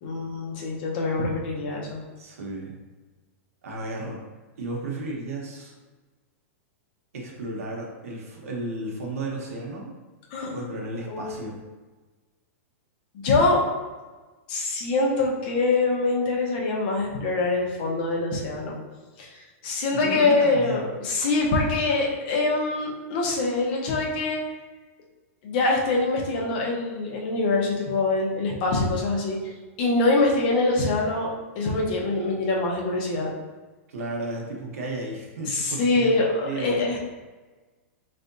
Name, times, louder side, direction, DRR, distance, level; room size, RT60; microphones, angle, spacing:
voice 1, 0.0-2.0 10.3-10.6 11.1-11.5 13.1-13.6 14.5-18.8 19.2-24.4 25.4-29.5 29.8-31.3 31.5-33.3 35.4-37.0, left 3 dB, 40° left, -1 dB, 0.8 m, -24 dB
voice 2, 2.2-2.7 3.6-4.2 4.6-5.7 7.1-9.9 10.5-11.6 19.9-20.8 33.9-36.2 36.4-36.8, right 2 dB, 85° right, -1 dB, 1.1 m, -33 dB
4.6 x 3.3 x 2.7 m, 1.3 s
supercardioid pair, 165°, 8 cm